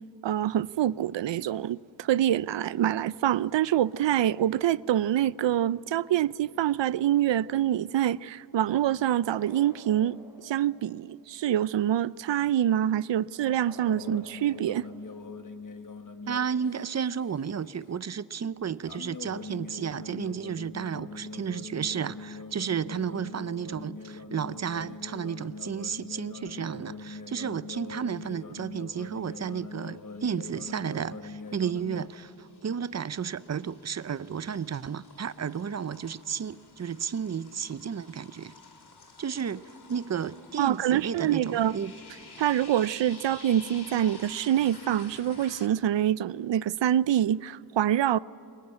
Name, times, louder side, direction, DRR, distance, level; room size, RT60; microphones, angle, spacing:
voice 1, 0.2-10.2 10.4-14.9 40.6-41.7 42.4-48.2, right 11 dB, 80° right, 0.5 m, -26 dB
sound 1, 9.2-11.2 13.3-15.4, equal, 5° right, 4.1 m, -53 dB
sound 2, 13.8-17.4 18.8-32.1, left 4 dB, 45° left, 1.2 m, -42 dB
voice 2, 16.3-38.5 39.2-41.9, right 7 dB, 40° right, 0.6 m, -33 dB
sound 3, 29.3-29.8 30.2-45.7, left 3 dB, 65° left, 2.7 m, -51 dB
23.5 x 21.0 x 9.8 m
wide cardioid pair, 95°, 43 cm